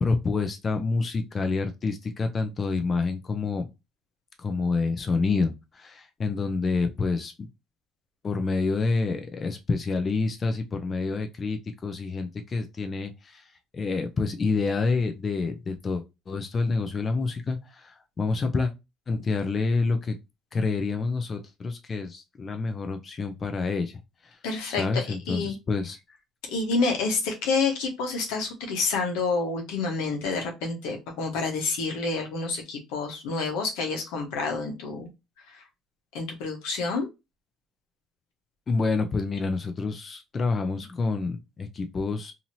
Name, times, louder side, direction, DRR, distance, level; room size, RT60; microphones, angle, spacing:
voice 1, 0.0-3.7 4.4-7.3 8.2-13.4 13.7-18.7 19.1-20.1 20.5-24.0 24.8-26.0 38.7-42.3, left 4 dB, 30° left, 0.5 m, -28 dB
voice 2, 24.4-25.6 26.5-35.1 35.5-35.6 36.1-37.1, left 4 dB, 85° left, 0.9 m, -28 dB
2.8 x 2.7 x 2.7 m
cardioid pair, 105°, 0 cm